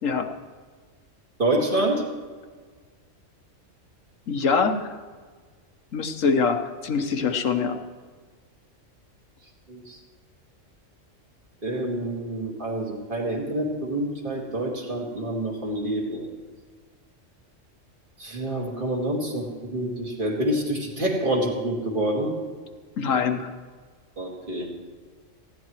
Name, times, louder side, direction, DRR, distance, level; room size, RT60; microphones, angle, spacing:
voice 1, 1.4-2.0 9.7-10.0 11.6-16.3 18.2-22.3 24.2-24.7, right 1 dB, 40° right, -1 dB, 2.5 m, -27 dB
voice 2, 4.3-4.9 5.9-7.8 23.0-23.5, left 5 dB, 80° left, 7 dB, 1.5 m, -24 dB
19.5 x 15.5 x 3.2 m, 1.6 s
omnidirectional pair, 1.3 m